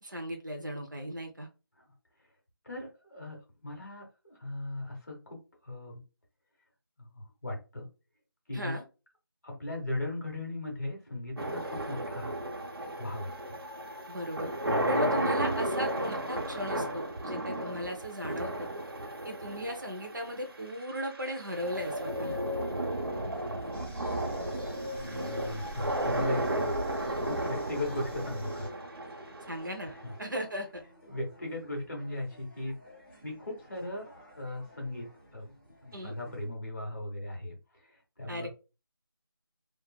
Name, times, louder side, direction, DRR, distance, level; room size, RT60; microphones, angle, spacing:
voice 1, 0.0-1.5 8.5-8.8 14.1-14.5 14.9-18.7 19.2-22.4 29.5-29.9 30.2-30.7 35.9-36.1 38.3-38.5, equal, 55° right, 5 dB, 0.8 m, -36 dB
voice 2, 2.6-6.0 7.0-7.9 8.5-8.8 9.4-12.4 13.0-13.6 14.6-15.1 25.0-26.7 27.0-28.7 29.9-30.1 31.1-32.8 33.2-34.1 34.4-35.1 35.3-35.5 35.8-37.6 37.8-38.5, left 1 dB, 45° left, 0 dB, 1.1 m, -38 dB
sound 1, 11.4-30.4, right 1 dB, 90° right, 0.8 m, -34 dB
sound 2, 23.2-36.5, equal, ahead, 0.8 m, -57 dB
sound 3, 23.7-28.7, right 1 dB, 30° left, 1.1 m, -46 dB
2.9 x 2.0 x 2.3 m, 0.30 s
figure-of-eight pair, 180°, 13 cm